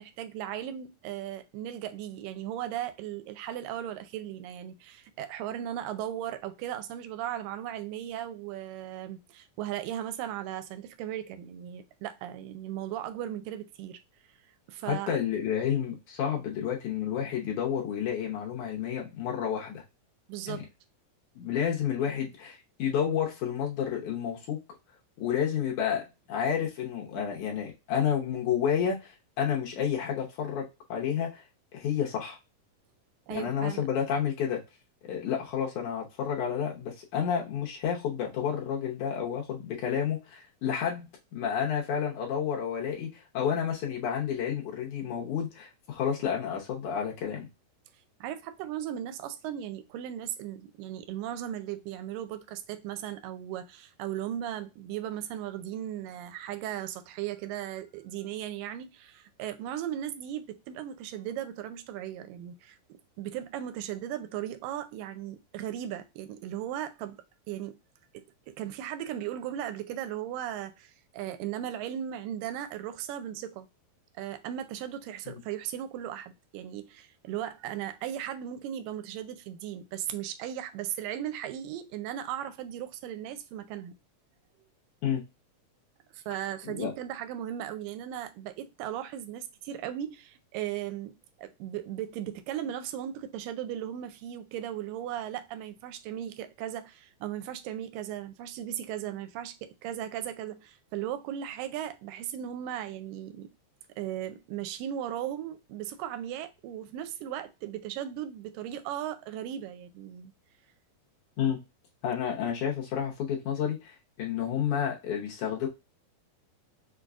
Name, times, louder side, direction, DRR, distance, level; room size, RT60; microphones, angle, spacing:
voice 1, 0.0-14.0 14.7-15.2 20.3-20.7 33.3-33.8 48.2-62.8 63.2-67.8 68.1-73.7 74.2-83.9 86.1-103.5 104.0-110.3, right 11 dB, 80° right, 2.0 m, -37 dB
voice 2, 14.9-19.8 20.5-20.6 21.4-24.6 25.2-31.4 31.7-32.4 33.3-34.6 35.0-47.5 75.3-75.4 85.0-85.2 86.6-86.9 111.4-111.6 112.0-115.7, left 8 dB, 70° left, 1.9 m, -30 dB
6.0 x 2.3 x 2.3 m
omnidirectional pair, 4.2 m